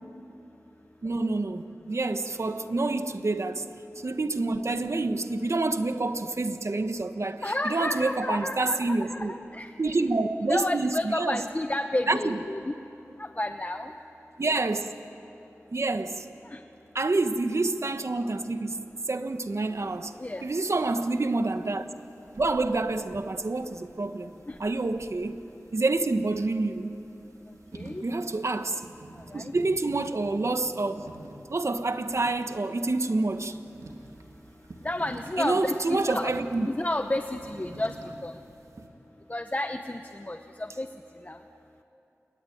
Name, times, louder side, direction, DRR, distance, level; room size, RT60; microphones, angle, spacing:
voice 1, 1.0-3.7 4.0-9.3 9.8-11.4 12.1-12.4 14.4-14.9 15.7-16.2 16.9-20.1 20.4-21.9 22.4-24.3 24.6-25.4 25.7-27.0 28.0-28.8 29.3-31.0 31.5-33.6 35.4-36.7, right 2 dB, 60° right, 1.4 m, -28 dB
voice 2, 7.4-10.0 10.5-12.7 13.2-13.9 16.5-16.6 20.2-20.4 24.5-24.6 27.7-28.0 29.3-29.5 34.8-36.3 36.6-38.0 38.2-38.3 39.3-40.9 41.2-41.4, left 1 dB, 30° left, 0.9 m, -31 dB
sound 1, 19.3-38.9, right 2 dB, 90° right, 2.5 m, -50 dB
28.0 x 22.0 x 9.5 m
wide cardioid pair, 75°, 5 cm